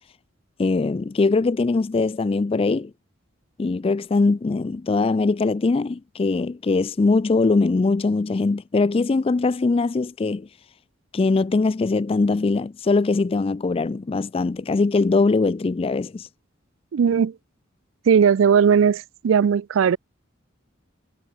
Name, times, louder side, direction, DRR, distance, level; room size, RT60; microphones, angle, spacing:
voice 1, 0.6-2.9 3.6-10.5 11.1-16.3, left 3 dB, 30° left, 0.3 m, -21 dB
voice 2, 16.9-17.3 18.1-20.0, right 7 dB, 80° right, 0.4 m, -18 dB
head